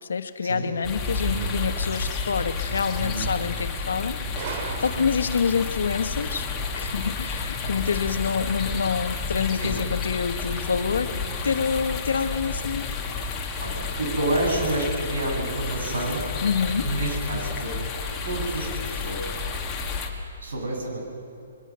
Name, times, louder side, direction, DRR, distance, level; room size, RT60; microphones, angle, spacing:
voice 1, 0.0-4.2 4.5-6.5 6.8-11.1 11.4-12.9 16.4-16.9, left 6 dB, 85° left, 9 dB, 1.3 m, -27 dB
sound 1, 0.8-20.1, left 4 dB, 15° left, 1.9 m, -31 dB
Gunshot gunfire, 4.4-5.6, right 5 dB, 40° right, 2.1 m, -35 dB
voice 2, 13.6-16.3 16.8-17.7 18.2-19.3 20.4-21.0, right 1 dB, 80° right, 0 dB, 7.7 m, -29 dB
24.5 x 21.5 x 6.2 m, 2.7 s
hypercardioid pair, 160°, 0 cm